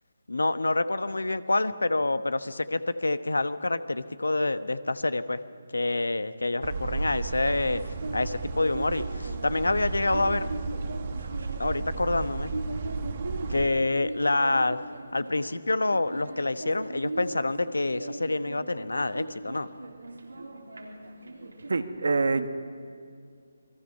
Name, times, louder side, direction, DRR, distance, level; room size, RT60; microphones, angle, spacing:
voice 1, 0.3-5.4 5.7-7.8 8.1-10.5 11.6-12.5 13.5-14.8 15.1-19.7, left 2 dB, 80° left, 12 dB, 1.1 m, -27 dB
sound 1, 6.6-13.7, right 4 dB, 40° right, 1.2 m, -34 dB
sound 2, 7.4-21.8, right 2 dB, 80° right, 3.7 m, -39 dB
voice 2, 21.7-22.5, right 3 dB, 65° right, 9 dB, 1.5 m, -25 dB
28.5 x 21.0 x 5.5 m, 2.3 s
figure-of-eight pair, 150°, 0 cm